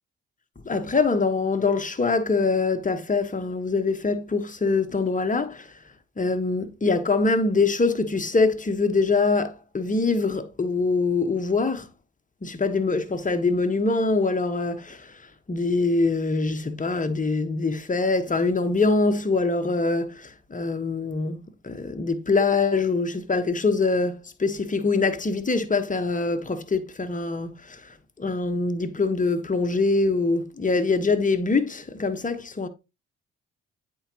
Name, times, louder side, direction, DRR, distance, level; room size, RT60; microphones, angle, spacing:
voice 1, 0.6-5.7 6.2-11.9 12.4-15.2 15.5-32.7, left 3 dB, 25° left, 1.2 m, -24 dB
8.6 x 4.8 x 2.9 m
hypercardioid pair, 50°, 33 cm